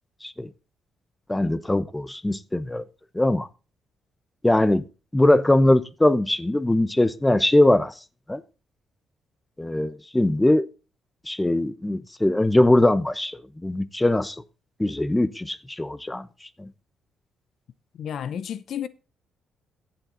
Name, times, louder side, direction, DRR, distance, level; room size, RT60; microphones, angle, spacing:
voice 1, 1.3-2.8 3.1-3.5 4.4-4.8 5.1-7.9 8.3-8.4 9.6-10.6 11.3-14.4 14.8-16.7, left 1 dB, 10° left, 0.8 m, -21 dB
voice 2, 18.0-18.9, left 9 dB, 65° left, 0.7 m, -31 dB
15.5 x 7.5 x 3.9 m
cardioid pair, 90°, 0 cm